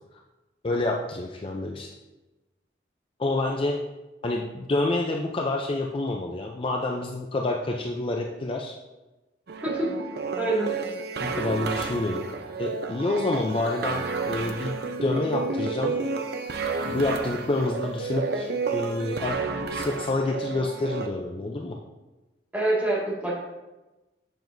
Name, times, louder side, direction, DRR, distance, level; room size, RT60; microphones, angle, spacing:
voice 1, 0.6-1.9 3.2-3.8 4.2-8.8 11.2-12.2 12.6-16.0 16.5-21.8, left 2 dB, 30° left, 1 dB, 0.5 m, -28 dB
sound 1, 9.5-21.1, right 4 dB, 60° right, 0.6 m, -31 dB
voice 2, 9.6-10.0 10.4-10.7 22.5-23.3, right 1 dB, 10° right, -6 dB, 1.9 m, -26 dB
7.7 x 7.0 x 2.6 m, 1.1 s
head